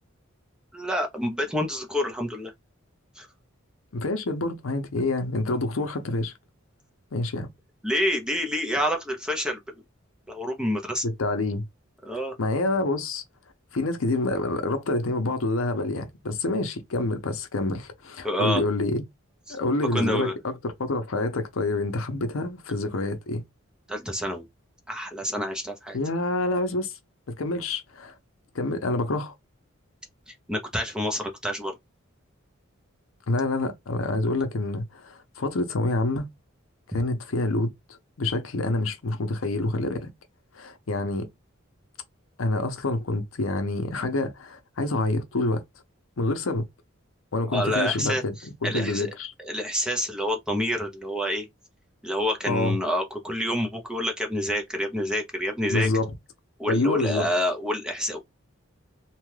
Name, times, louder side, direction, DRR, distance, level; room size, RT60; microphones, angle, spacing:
voice 1, 0.7-2.5 3.2-3.3 7.8-9.8 10.3-11.0 12.0-12.3 18.2-18.6 19.5-19.6 19.9-20.3 23.9-24.4 24.9-26.0 30.3-31.7 47.5-48.2 48.6-49.1 49.4-51.5 52.0-55.9 56.6-58.2, equal, 5° right, 0.6 m, -28 dB
voice 2, 3.9-6.3 7.1-7.5 11.0-11.6 12.4-13.2 13.7-19.0 19.5-23.4 25.9-26.9 27.4-28.1 28.5-29.3 33.3-36.3 36.9-37.7 38.2-40.1 40.5-41.3 42.4-45.6 46.2-46.7 47.3-48.3 48.6-49.3 52.5-52.8 55.7-56.1 56.7-57.3, left 2 dB, 75° left, 0.7 m, -27 dB
2.8 x 2.3 x 3.2 m
head